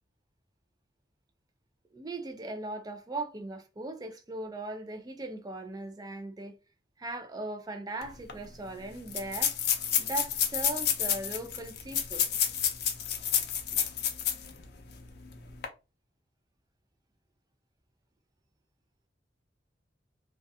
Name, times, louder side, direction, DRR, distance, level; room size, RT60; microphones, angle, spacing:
voice 1, 1.9-6.6 7.0-9.5 10.0-12.2, right 2 dB, 20° right, 0.4 m, -38 dB
sound 1, 8.0-8.1 8.3-8.4 9.1-14.5 14.9-15.0 15.5-15.7, left 9 dB, 65° left, 0.5 m, -29 dB
2.3 x 2.3 x 2.6 m
head